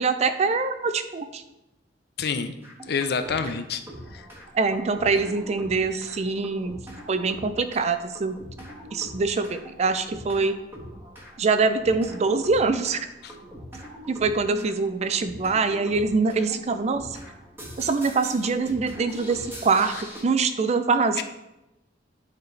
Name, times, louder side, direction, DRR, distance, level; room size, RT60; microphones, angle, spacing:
voice 1, 0.0-1.4 4.5-6.8 7.1-8.4 8.9-10.6 11.4-13.0 14.1-17.1 17.8-19.9 20.2-21.2, right 4 dB, 40° right, 10 dB, 0.4 m, -24 dB
voice 2, 2.2-2.6 2.9-3.8 4.1-4.3 13.2-13.3 21.2-21.3, left 5 dB, 60° left, 9 dB, 0.5 m, -27 dB
sound 1, 2.6-3.6 3.9-20.2, equal, 15° right, 1.3 m, -43 dB
9.3 x 4.1 x 3.2 m, 0.93 s
head